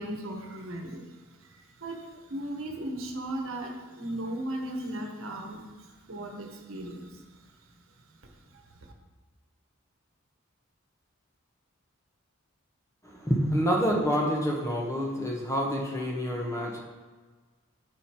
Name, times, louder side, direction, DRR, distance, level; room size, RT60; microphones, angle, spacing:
voice 1, 0.0-7.5 8.2-8.9, right 1 dB, 70° right, 2 dB, 1.2 m, -37 dB
voice 2, 13.0-16.8, equal, 15° left, -2 dB, 1.2 m, -27 dB
9.2 x 5.0 x 4.5 m, 1.4 s
head